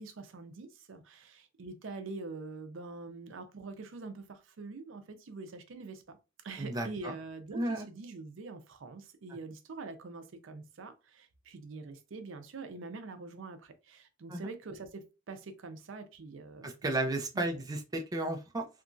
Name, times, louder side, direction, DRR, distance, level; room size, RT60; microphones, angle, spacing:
voice 1, 0.0-6.2 6.4-16.7 17.3-17.6, right 3 dB, 75° right, 0.5 m, -45 dB
voice 2, 6.6-7.1 7.5-7.9 14.3-14.5 16.6-18.7, right 1 dB, 20° right, 0.4 m, -33 dB
2.9 x 2.3 x 2.5 m
head